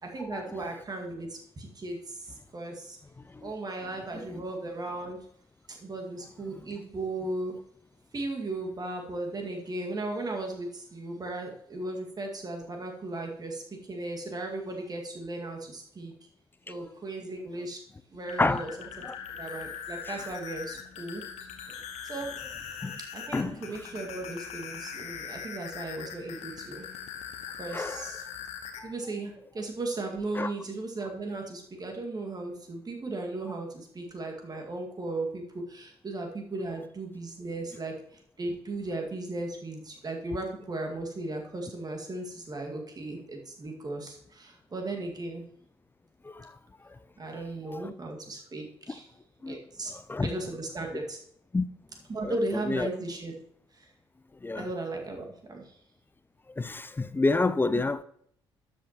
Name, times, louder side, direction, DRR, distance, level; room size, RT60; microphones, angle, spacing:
voice 1, 0.0-3.0 3.4-5.2 5.7-7.6 8.1-16.1 16.7-17.8 18.1-18.7 19.0-19.1 19.4-21.2 22.0-22.3 23.1-26.9 27.6-28.2 28.8-37.9 38.4-45.4 47.2-49.1 49.5-49.9 50.2-51.2 52.1-53.3 53.7-53.9 54.5-55.7 57.7-57.8, right 2 dB, 30° right, 2 dB, 2.1 m, -36 dB
sound 1, 18.1-28.8, left 7 dB, 55° left, 1.2 m, -41 dB
voice 2, 27.7-28.1 28.8-28.9 30.3-30.5 46.2-46.5 47.7-47.9 49.4-49.6 49.9-50.3 51.5-51.7 52.2-52.9 54.4-54.7 56.6-58.0, left 3 dB, 15° left, 14 dB, 0.5 m, -29 dB
12.0 x 8.0 x 3.1 m, 0.66 s
figure-of-eight pair, 50°, 14 cm